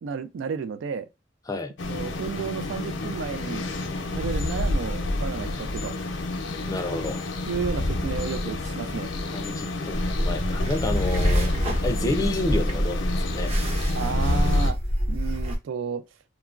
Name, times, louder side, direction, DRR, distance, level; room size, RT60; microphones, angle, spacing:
voice 1, 0.0-1.1 1.9-3.6 4.1-6.0 7.5-9.1 13.9-14.8 15.1-16.0, right 6 dB, 80° right, 0.3 m, -32 dB
sound 1, 1.8-14.7, left 2 dB, 80° left, 0.6 m, -29 dB
voice 2, 6.7-7.2 9.3-11.5 11.8-13.5, left 2 dB, 20° left, 0.4 m, -30 dB
sound 2, 8.1-15.6, left 1 dB, 65° right, 0.9 m, -47 dB
sound 3, 9.9-15.6, equal, 35° right, 0.6 m, -26 dB
2.9 x 2.2 x 2.4 m
head